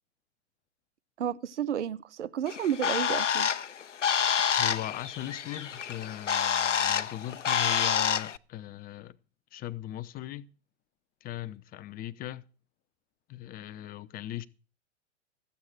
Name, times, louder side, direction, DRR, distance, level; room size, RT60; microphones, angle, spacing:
voice 1, 1.2-3.5, right 9 dB, 75° right, 0.8 m, -31 dB
Bird, 2.5-8.4, left 8 dB, 80° left, 0.7 m, -28 dB
voice 2, 4.6-9.2 9.5-10.5 11.2-12.4 13.3-14.4, left 13 dB, 25° left, 0.7 m, -39 dB
13.5 x 8.2 x 7.4 m
figure-of-eight pair, 100°, 36 cm